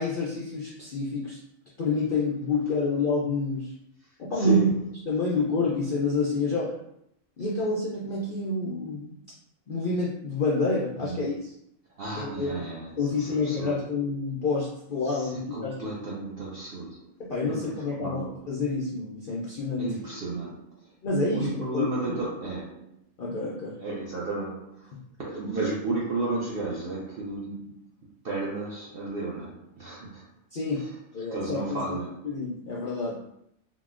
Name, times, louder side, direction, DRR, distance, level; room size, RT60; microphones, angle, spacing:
voice 1, 0.0-1.4 1.8-3.7 4.2-4.7 5.1-6.7 7.4-9.2 9.7-11.5 12.2-12.5 13.0-15.9 17.2-19.9 21.0-21.5 21.7-21.8 22.1-22.2 23.2-23.7 30.5-30.8 31.1-32.0 32.2-33.2, left 3 dB, 65° left, 0.5 m, -28 dB
voice 2, 4.3-4.8 10.9-11.3 12.0-13.8 15.1-17.1 17.4-18.5 19.8-20.9 21.3-22.9 23.8-24.9 25.2-27.8 28.2-30.3 30.7-31.0 31.3-32.3, right 2 dB, 65° right, 0.6 m, -33 dB
3.7 x 2.0 x 2.4 m
omnidirectional pair, 1.5 m